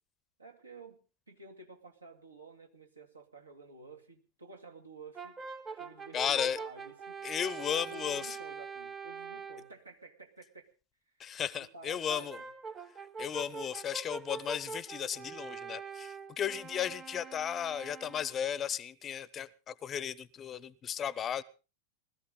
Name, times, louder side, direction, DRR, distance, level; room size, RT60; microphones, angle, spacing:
voice 1, 0.4-5.4 5.7-10.7 11.6-12.5, right 3 dB, 80° right, 2.4 m, -52 dB
Brass instrument, 5.1-9.7 12.1-18.4, right 5 dB, 20° right, 1.0 m, -44 dB
voice 2, 6.1-6.6 7.2-8.4 11.2-12.4 13.2-21.4, left 9 dB, 25° left, 0.7 m, -35 dB
20.5 x 14.0 x 3.8 m
figure-of-eight pair, 90°, 0 cm